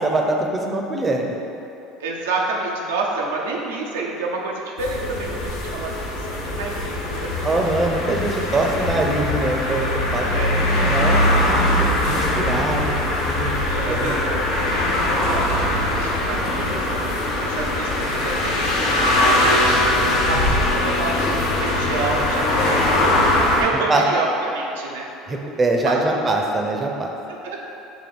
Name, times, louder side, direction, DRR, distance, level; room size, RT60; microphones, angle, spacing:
voice 1, 0.0-1.4 7.4-13.5 13.9-14.2 23.7-24.0 25.3-27.1, right 2 dB, 25° right, 2 dB, 0.5 m, -23 dB
voice 2, 2.0-7.5 8.5-8.9 10.3-10.8 12.2-12.6 13.7-17.0 17.4-20.0 20.2-25.1 25.8-26.0 27.4-27.6, right 3 dB, 90° right, -2 dB, 0.4 m, -29 dB
sound 1, 4.8-23.6, left 1 dB, 70° left, 0.6 m, -21 dB
3.5 x 2.6 x 4.0 m, 2.8 s
supercardioid pair, 90°, 0 cm